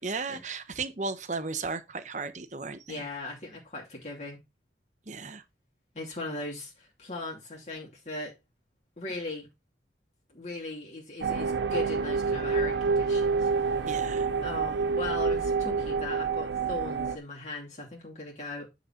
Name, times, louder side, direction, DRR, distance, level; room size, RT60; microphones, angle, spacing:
voice 1, 0.0-3.1 5.1-5.4 13.9-14.3, right 4 dB, 45° right, 1.0 m, -35 dB
voice 2, 2.9-4.4 5.9-8.4 9.0-9.5 10.3-13.9 14.4-18.7, left 2 dB, 40° left, 2.6 m, -38 dB
sound 1, 11.2-17.2, right 5 dB, 85° right, 0.6 m, -28 dB
9.8 x 4.2 x 5.7 m
head